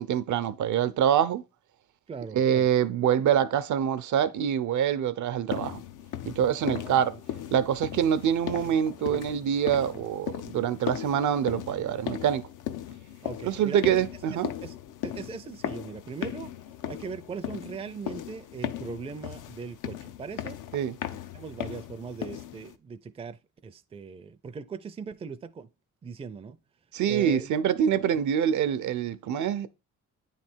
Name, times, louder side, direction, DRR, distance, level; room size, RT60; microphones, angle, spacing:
voice 1, 0.0-1.4 2.3-5.8 6.2-7.2 7.5-12.5 13.4-14.5 20.7-21.0 26.9-29.7, right 9 dB, 70° right, 0.6 m, -25 dB
voice 2, 2.1-2.7 6.6-7.2 13.2-13.9 14.3-14.8 15.0-16.5 16.9-20.6 21.1-25.7 26.0-26.6 27.1-27.5, right 5 dB, 20° right, 0.4 m, -40 dB
sound 1, 5.5-22.8, left 11 dB, 85° left, 0.6 m, -38 dB
9.2 x 3.3 x 4.4 m
cardioid pair, 115°, 31 cm